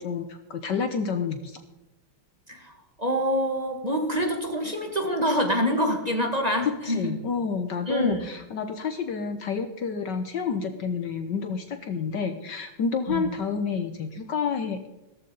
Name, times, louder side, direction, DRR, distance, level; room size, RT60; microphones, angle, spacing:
voice 1, 0.0-1.6 6.6-14.9, left 5 dB, 60° left, 8 dB, 1.4 m, -29 dB
voice 2, 3.0-7.1 7.9-8.2 13.1-13.3, equal, 20° right, 2 dB, 1.7 m, -26 dB
16.0 x 14.0 x 3.9 m, 0.97 s
omnidirectional pair, 2.4 m